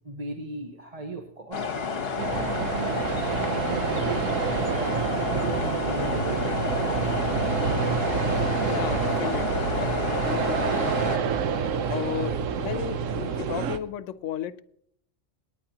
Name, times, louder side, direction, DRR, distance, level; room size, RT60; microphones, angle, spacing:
voice 1, 0.0-1.6 2.1-3.0 3.4-4.3 4.6-5.0 5.3-7.4, right 2 dB, 30° right, 3 dB, 1.1 m, -37 dB
sound 1, 1.5-11.2, left 5 dB, 55° left, 1.2 m, -31 dB
sound 2, 2.2-13.8, right 6 dB, 85° right, 1.2 m, -27 dB
voice 2, 8.5-11.6 11.9-14.6, left 10 dB, 75° left, 14 dB, 1.0 m, -34 dB
26.5 x 10.0 x 2.9 m, 0.70 s
omnidirectional pair, 1.3 m